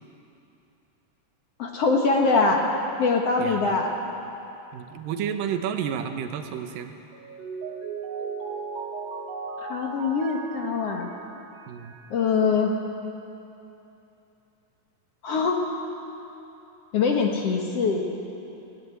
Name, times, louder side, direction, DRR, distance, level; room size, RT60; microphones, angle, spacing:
voice 1, 1.6-2.7 3.0-3.9 9.6-11.1 12.1-12.7 15.2-15.7 16.9-18.1, left 4 dB, 55° left, 1 dB, 2.0 m, -23 dB
voice 2, 3.4-3.7 4.7-6.9 11.7-12.0, right 8 dB, 85° right, 7 dB, 2.7 m, -31 dB
Mallet percussion, 7.1-12.1, right 5 dB, 60° right, 3.7 m, -36 dB
18.0 x 16.5 x 9.4 m, 2.9 s
omnidirectional pair, 3.9 m